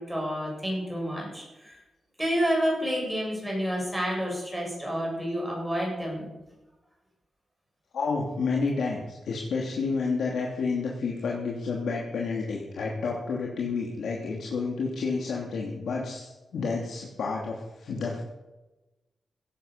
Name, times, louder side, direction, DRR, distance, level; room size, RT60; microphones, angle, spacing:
voice 1, 0.0-1.8 2.2-6.3, equal, 5° right, -2 dB, 7.6 m, -29 dB
voice 2, 7.9-18.2, left 4 dB, 85° left, -2 dB, 3.0 m, -30 dB
17.0 x 11.5 x 6.8 m, 1.0 s
wide cardioid pair, 150°, 0 cm